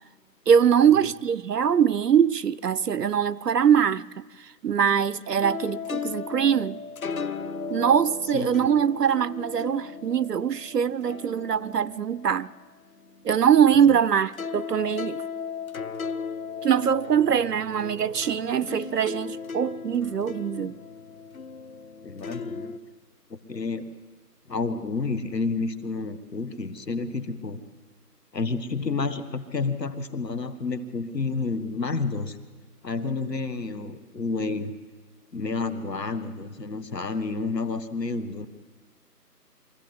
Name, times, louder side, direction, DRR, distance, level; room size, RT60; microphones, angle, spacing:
voice 1, 0.5-4.1 4.6-6.8 7.7-12.5 13.2-15.2 16.6-20.7, right 8 dB, 75° right, 0.6 m, -22 dB
sound 1, 5.4-14.0 14.3-22.8, left 5 dB, 60° left, 0.9 m, -36 dB
voice 2, 8.3-8.7 13.9-14.0 22.0-22.7 23.3-23.9 24.5-27.6 28.3-32.4 32.8-34.8 35.3-38.5, left 4 dB, 85° left, 1.7 m, -30 dB
23.5 x 16.0 x 8.1 m
figure-of-eight pair, 175°, 48 cm